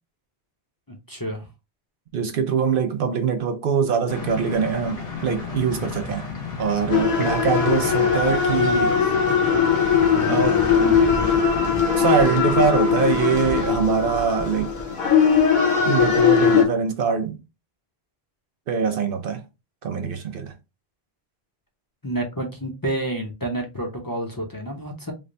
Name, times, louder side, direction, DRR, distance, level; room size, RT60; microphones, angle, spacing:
voice 1, 0.9-1.4 7.7-7.8 8.8-8.9 10.1-11.4 22.0-25.1, right 1 dB, 25° left, 0.6 m, -30 dB
voice 2, 2.1-6.3 6.6-9.0 10.3-10.6 11.9-14.7 15.8-17.4 18.7-19.4 19.8-20.5, right 6 dB, 65° right, 0.7 m, -23 dB
sound 1, 4.1-13.7, left 5 dB, 75° left, 1.7 m, -33 dB
sound 2, 6.9-16.6, left 6 dB, 50° left, 0.9 m, -20 dB
3.3 x 2.1 x 3.8 m
omnidirectional pair, 1.1 m